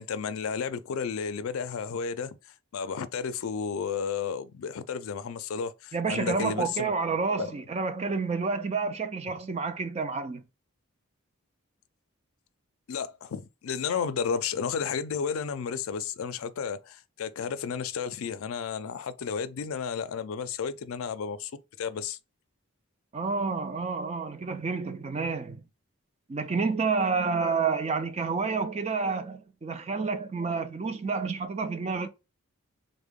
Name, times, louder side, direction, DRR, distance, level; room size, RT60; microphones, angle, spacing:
voice 1, 0.0-2.4 2.7-6.9 7.4-7.5 12.9-21.5 21.8-22.2, left 6 dB, 70° left, 0.4 m, -32 dB
voice 2, 5.9-10.4 23.1-25.6 26.3-32.1, right 4 dB, 30° right, 0.4 m, -29 dB
3.6 x 2.1 x 3.5 m
head